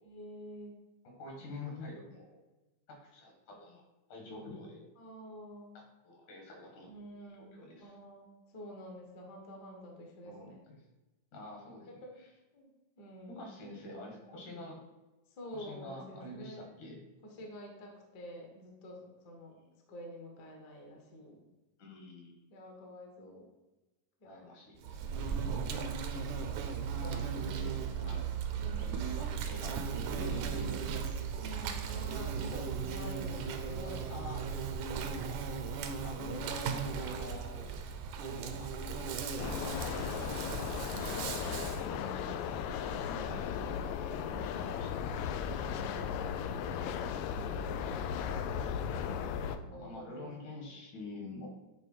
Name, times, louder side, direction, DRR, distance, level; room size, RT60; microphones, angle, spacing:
voice 1, 0.0-0.8 1.4-1.5 4.3-4.4 5.0-5.8 6.8-10.6 12.0-12.1 12.5-12.7 13.0-13.5 14.0-14.4 15.3-16.7 17.2-19.5 19.9-21.4 22.5-23.5 24.2-24.5 25.3-25.9 27.1-27.7 28.6-28.9 30.2-30.6 31.4-35.4 36.2-37.1 43.0-43.6 44.3-44.7 45.6-46.6 47.4-48.4 49.6-50.3, equal, 50° left, 1 dB, 1.2 m, -49 dB
voice 2, 1.0-2.4 2.9-3.8 4.1-4.9 5.7-6.9 7.4-8.0 10.3-10.8 11.3-12.3 13.3-14.8 15.5-17.0 19.5-19.7 21.8-22.4 24.2-25.5 26.9-28.3 28.6-31.1 34.1-34.4 36.0-36.2 36.6-37.8 38.2-39.2 39.6-42.7 43.0-43.8 44.6-45.4 46.6-47.2 48.9-49.2 49.7-51.5, left 1 dB, 70° left, 0 dB, 3.1 m, -47 dB
Insect, 24.8-41.8, right 6 dB, 75° right, 2.0 m, -37 dB
sound 1, 39.4-49.6, left 7 dB, 90° left, 1.6 m, -36 dB
10.0 x 3.5 x 4.5 m, 1.1 s
omnidirectional pair, 3.8 m